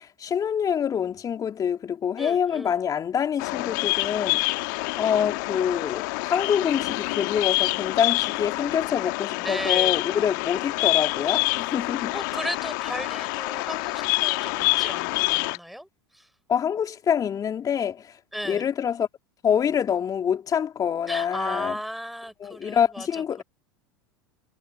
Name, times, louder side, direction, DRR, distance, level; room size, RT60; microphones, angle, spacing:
voice 1, 0.0-12.1 16.5-18.1 18.4-19.1 19.4-21.8 22.4-23.4, left 8 dB, 30° left, 2.7 m, -26 dB
voice 2, 2.2-2.8 9.4-9.9 12.1-15.9 16.1-16.3 18.3-18.7 21.1-23.4, equal, ahead, 5.8 m, -35 dB
Bird vocalization bird call bird song, 3.4-15.6, left 27 dB, 60° left, 1.2 m, -27 dB
figure-of-eight pair, 80°, 12 cm